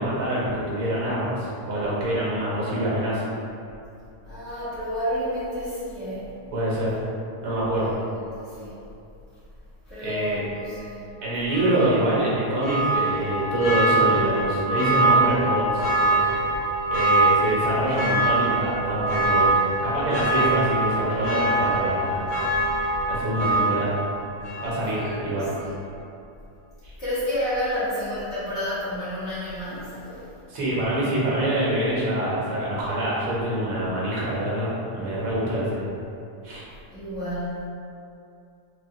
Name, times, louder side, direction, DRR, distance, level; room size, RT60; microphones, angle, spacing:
voice 1, 0.0-3.2 6.5-7.0 7.4-7.9 10.0-10.4 11.2-16.3 16.9-19.5 19.8-22.3 23.1-24.0 24.6-25.5 26.8-26.9 30.5-35.9 36.4-36.6, right 1 dB, 75° right, -7 dB, 1.3 m, -25 dB
voice 2, 4.2-6.3 7.7-8.0 8.3-8.8 9.9-11.1 25.0-25.2 25.6-25.7 27.0-30.3 36.9-37.7, equal, 45° left, -13 dB, 1.2 m, -30 dB
Church bell, 11.5-25.2 25.5-25.6, right 2 dB, 65° left, 1.2 m, -24 dB
3.4 x 2.2 x 2.6 m, 2.6 s
omnidirectional pair, 1.7 m